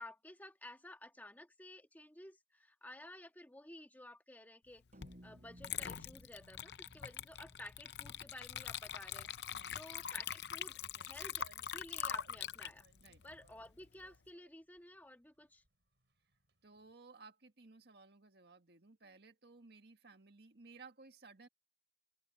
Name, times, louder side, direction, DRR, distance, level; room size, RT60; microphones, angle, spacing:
voice 1, 0.0-4.8 5.2-12.8 13.2-15.6, left 1 dB, 10° left, 1.7 m, -54 dB
sound 1, 4.9-9.4, equal, 45° right, 7.5 m, -62 dB
Water / Liquid, 5.0-5.2 5.6-14.1, left 9 dB, 70° left, 0.6 m, -43 dB
sound 2, 10.8-16.9, right 2 dB, 90° right, 5.6 m, -68 dB
voice 2, 16.6-21.5, right 4 dB, 65° right, 1.8 m, -58 dB
open air
head